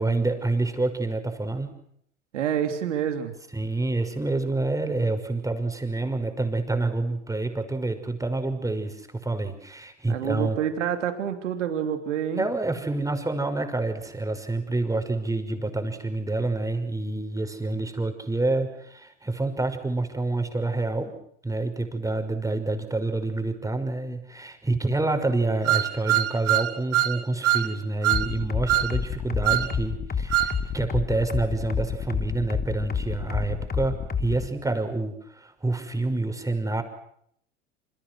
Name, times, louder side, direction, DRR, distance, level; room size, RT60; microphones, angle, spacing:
voice 1, 0.0-1.7 3.5-10.6 12.4-21.1 21.4-36.8, right 2 dB, 10° right, 7 dB, 5.8 m, -28 dB
voice 2, 2.3-3.3 10.1-12.5, right 9 dB, 75° right, 6 dB, 3.3 m, -27 dB
sound 1, 25.7-27.2 27.4-27.7 28.0-28.3 28.7-28.9 29.4-29.7 30.3-30.5, right 13 dB, 40° right, 2.8 m, -22 dB
sound 2, 28.1-34.5, left 6 dB, 25° left, 3.0 m, -28 dB
28.5 x 28.0 x 6.4 m, 0.70 s
hypercardioid pair, 80°, 36 cm